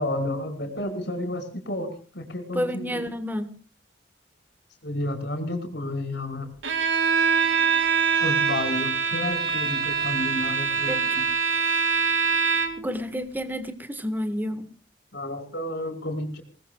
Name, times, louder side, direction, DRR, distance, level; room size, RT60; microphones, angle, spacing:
voice 1, 0.0-1.9 2.1-3.1 4.8-6.5 8.2-11.2 15.1-16.4, left 1 dB, 65° left, 4 dB, 5.4 m, -31 dB
voice 2, 2.5-3.5 10.9-11.2 12.8-14.7, equal, 10° right, 8 dB, 1.6 m, -30 dB
Bowed string instrument, 6.6-12.9, right 5 dB, 80° right, 2.5 m, -24 dB
28.5 x 19.5 x 2.4 m, 0.38 s
head